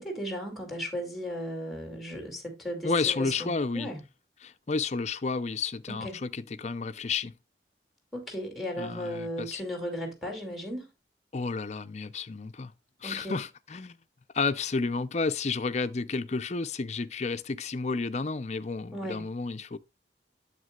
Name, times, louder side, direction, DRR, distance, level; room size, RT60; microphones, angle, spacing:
voice 1, 0.0-4.0 5.9-6.1 8.1-10.9 13.0-13.4 18.9-19.3, equal, ahead, 2.5 m, -36 dB
voice 2, 2.8-3.9 4.4-7.3 8.8-9.6 11.3-12.7 13.0-14.0 14.3-19.8, left 4 dB, 40° left, 0.5 m, -31 dB
9.4 x 7.3 x 2.3 m
head